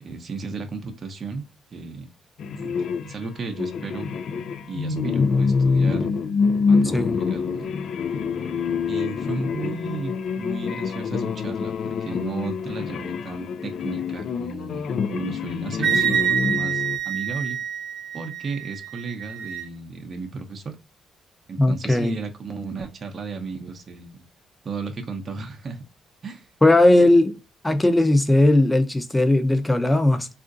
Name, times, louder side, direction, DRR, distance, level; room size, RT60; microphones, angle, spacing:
voice 1, 0.0-1.5 1.7-2.1 2.6-4.1 4.7-6.1 6.7-7.7 8.9-17.6 18.1-20.8 21.5-24.2 24.6-25.8 26.2-26.5, right 4 dB, 45° right, 0.6 m, -34 dB
sound 1, 2.4-17.0, left 5 dB, 65° left, 0.3 m, -26 dB
Wind instrument woodwind instrument, 15.8-19.7, right 8 dB, 80° right, 0.7 m, -26 dB
voice 2, 21.6-22.2 26.6-27.3 27.6-30.3, left 1 dB, 10° left, 0.6 m, -18 dB
3.6 x 2.5 x 2.5 m
cardioid pair, 90°, 0 cm